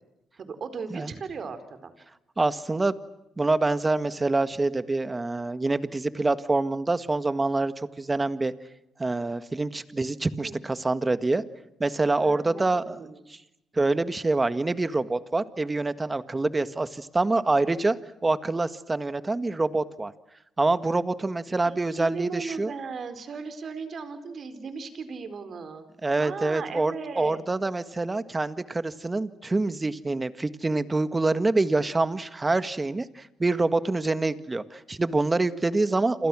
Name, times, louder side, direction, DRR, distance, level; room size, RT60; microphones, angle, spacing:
voice 1, 0.4-1.9 10.4-10.6 12.2-12.6 12.9-13.2 21.6-25.8 26.2-27.4, right 5 dB, 50° right, 10 dB, 4.3 m, -37 dB
voice 2, 2.4-2.9 3.4-8.5 9.0-11.4 11.8-13.0 13.3-13.4 13.7-18.0 18.2-20.1 20.6-22.7 26.0-36.3, right 2 dB, 20° right, 12 dB, 1.7 m, -26 dB
29.0 x 27.0 x 6.3 m, 0.89 s
cardioid pair, 90°, 0 cm